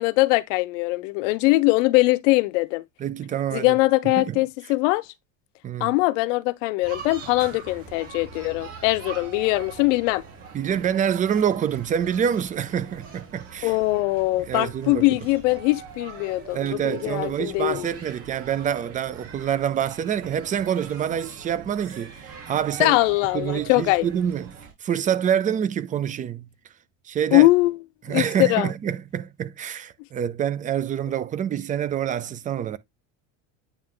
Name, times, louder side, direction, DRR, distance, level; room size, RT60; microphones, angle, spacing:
voice 1, 0.0-2.8 3.5-5.0 5.8-10.2 13.6-16.6 16.8-17.9 22.8-24.1 27.3-27.8 28.1-28.7, left 21 dB, 85° left, 0.8 m, -21 dB
voice 2, 3.0-3.8 4.0-4.4 5.6-6.0 10.5-13.8 14.5-15.1 16.5-23.0 23.3-24.6 24.8-26.5 27.1-27.5 28.0-32.8, right 9 dB, 20° right, 0.4 m, -26 dB
sound 1, 6.8-24.7, right 6 dB, 40° right, 3.0 m, -43 dB
9.2 x 3.1 x 3.8 m
cardioid pair, 140°, 36 cm